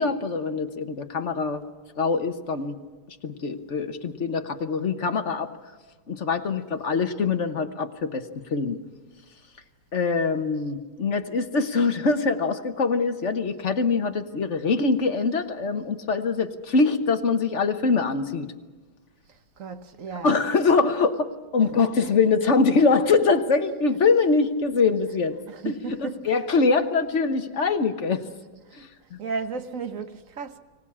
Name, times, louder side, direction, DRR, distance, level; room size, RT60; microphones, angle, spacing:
voice 1, 0.0-1.6 2.0-2.8 3.2-5.5 6.1-8.2 8.5-8.8 9.9-18.5 20.2-25.4 25.6-28.2 28.8-28.9, left 4 dB, 40° left, 1.2 m, -23 dB
voice 2, 19.6-20.3 21.6-21.7 22.0-22.1 25.5-26.3 29.2-30.6, right 5 dB, 50° right, 1.1 m, -34 dB
24.5 x 18.0 x 8.6 m
omnidirectional pair, 2.4 m